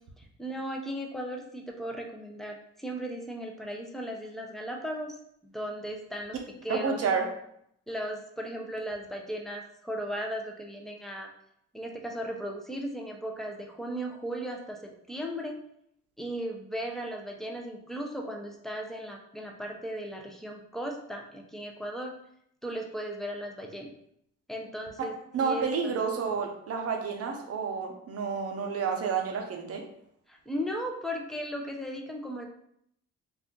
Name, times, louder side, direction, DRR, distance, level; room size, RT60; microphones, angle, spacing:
voice 1, 0.2-5.2 5.4-7.0 7.9-11.3 11.7-15.6 16.2-22.1 22.6-23.9 24.5-25.1 25.4-25.7 30.3-32.5, equal, ahead, 1 dB, 0.5 m, -36 dB
voice 2, 6.7-7.3 25.3-29.8, right 5 dB, 50° right, 2 dB, 0.7 m, -30 dB
2.5 x 2.4 x 3.7 m, 0.73 s
cardioid pair, 90°, 30 cm